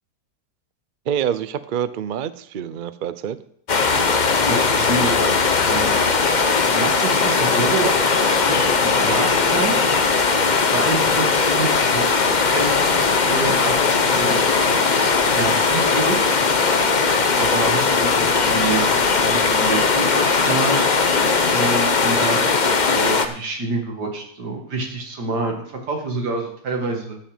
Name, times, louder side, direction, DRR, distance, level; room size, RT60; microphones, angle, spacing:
voice 1, 1.1-3.4, right 9 dB, 60° right, 14 dB, 0.5 m, -26 dB
sound 1, 3.7-23.3, left 4 dB, 35° left, 0.8 m, -19 dB
voice 2, 4.5-6.0 6.6-9.8 10.7-12.2 12.5-13.0 13.3-13.7 14.0-14.4 15.3-16.3 17.4-20.9 21.5-27.2, right 3 dB, 90° right, 2 dB, 2.6 m, -27 dB
13.0 x 8.7 x 5.1 m, 0.66 s
omnidirectional pair, 1.7 m